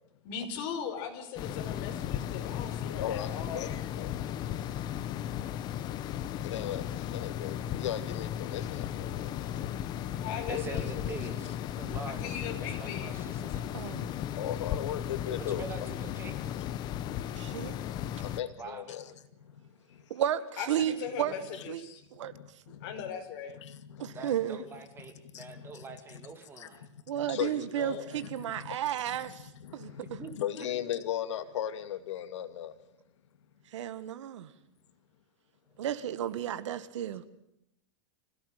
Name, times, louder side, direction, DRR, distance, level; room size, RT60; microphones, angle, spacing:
voice 1, 0.2-3.6 10.1-11.4 12.0-13.2 20.6-22.0 22.8-23.6 27.8-28.0, left 7 dB, 50° left, 5.3 m, -39 dB
sound 1, 1.4-18.4, left 10 dB, 30° left, 1.1 m, -35 dB
voice 2, 3.0-4.4 6.4-9.6 14.4-15.6 17.5-19.1 19.4-20.1 21.5-21.6 22.2-23.0 23.5-24.3 25.3-26.2 26.6-27.9 28.2-28.8 29.2-32.7, left 10 dB, 80° left, 2.3 m, -38 dB
voice 3, 10.5-13.7 15.4-16.4 18.6-19.0 24.1-26.9 30.0-30.3, right 4 dB, 15° right, 2.7 m, -44 dB
voice 4, 13.7-14.1 17.4-17.8 20.1-21.3 21.7-21.9 22.1-22.3 24.0-24.6 27.1-29.5 29.7-30.2 33.7-34.5 35.8-37.2, right 11 dB, 85° right, 1.9 m, -33 dB
26.5 x 17.0 x 9.2 m
supercardioid pair, 160°, 15 cm